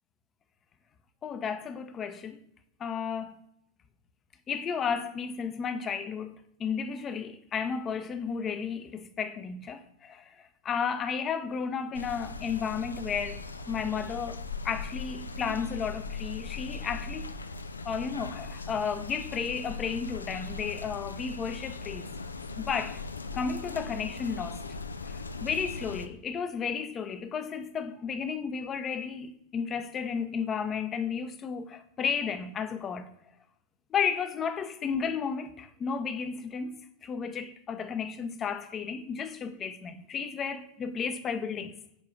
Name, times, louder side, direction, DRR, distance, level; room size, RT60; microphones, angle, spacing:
voice 1, 1.2-2.4 2.8-3.3 4.5-13.4 13.7-17.3 17.8-22.1 22.6-23.0 23.3-24.6 25.0-33.1 33.9-41.7, left 6 dB, 25° left, 0.8 m, -33 dB
sound 1, 11.9-26.1, left 3 dB, 75° left, 0.6 m, -39 dB
7.1 x 4.8 x 7.0 m
figure-of-eight pair, 90°, 0 cm